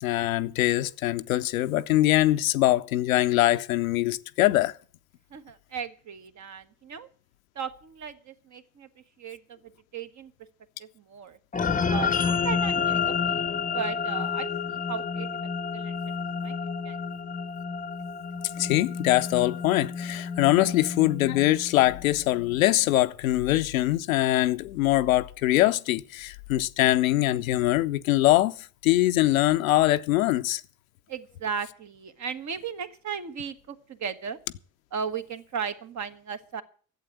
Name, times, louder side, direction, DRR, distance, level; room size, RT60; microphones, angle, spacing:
voice 1, 0.0-4.7 18.4-30.6, left 16 dB, 80° left, 0.6 m, -23 dB
voice 2, 5.3-7.1 7.5-8.9 9.2-9.6 9.9-10.3 10.8-11.4 11.9-13.4 13.7-15.3 15.7-16.0 16.4-17.0 31.1-34.4 34.9-36.6, right 6 dB, 45° right, 1.4 m, -36 dB
sound 1, 11.5-22.2, left 6 dB, 20° left, 0.8 m, -30 dB
11.5 x 8.1 x 9.1 m
figure-of-eight pair, 50°, 40 cm